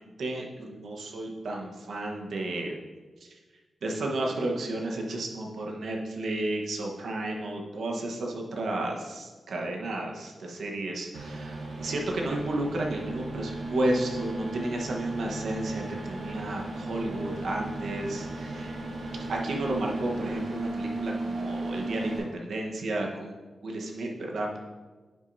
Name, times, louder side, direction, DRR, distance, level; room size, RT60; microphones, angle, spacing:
voice 1, 0.0-2.7 3.8-18.7 19.3-23.4 23.6-24.6, right 1 dB, 70° right, 0 dB, 1.2 m, -32 dB
sound 1, 11.1-22.2, right 2 dB, 90° right, 1.8 m, -35 dB
10.5 x 6.2 x 2.7 m, 1.3 s
wide cardioid pair, 135°, 0 cm